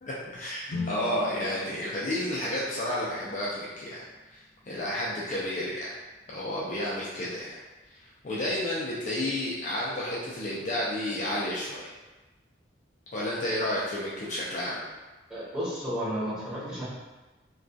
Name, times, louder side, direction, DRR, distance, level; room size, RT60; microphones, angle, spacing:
voice 1, 0.0-4.0 4.3-5.9 6.3-7.6 8.2-11.8 13.1-14.8, left 1 dB, 40° left, -6 dB, 0.4 m, -31 dB
sound 1, 0.7-4.7, left 3 dB, 90° left, 0.5 m, -41 dB
voice 2, 15.3-16.8, equal, 5° right, -10 dB, 0.7 m, -32 dB
2.2 x 2.2 x 2.5 m, 1.1 s
head